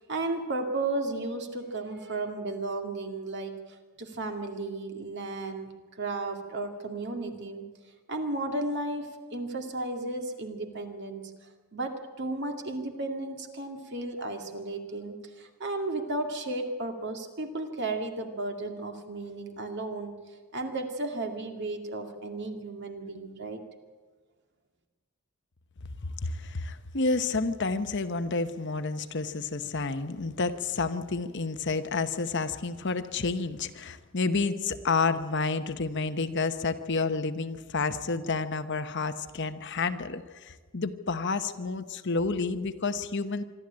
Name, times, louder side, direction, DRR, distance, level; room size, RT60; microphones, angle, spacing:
voice 1, 0.0-3.6 4.0-7.7 8.1-11.2 11.7-20.1 20.5-23.6, right 2 dB, 50° right, 4 dB, 2.2 m, -34 dB
voice 2, 26.0-43.4, left 4 dB, 50° left, 10 dB, 0.9 m, -30 dB
25.5 x 12.0 x 8.7 m, 1.4 s
head